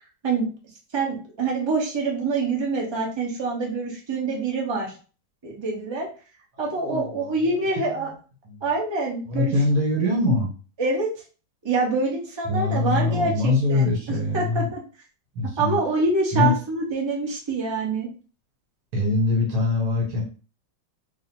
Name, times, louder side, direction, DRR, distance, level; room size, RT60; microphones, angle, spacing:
voice 1, 0.9-4.9 5.4-6.1 6.6-8.1 8.6-9.5 10.8-11.1 11.6-14.8 15.6-18.1, right 3 dB, 25° right, -2 dB, 0.7 m, -25 dB
voice 2, 6.5-8.1 8.4-8.6 9.3-10.5 12.5-14.7 15.3-15.8 16.3-16.5 18.9-20.2, left 2 dB, 70° right, 0 dB, 1.7 m, -23 dB
2.7 x 2.7 x 4.3 m, 0.37 s
omnidirectional pair, 1.9 m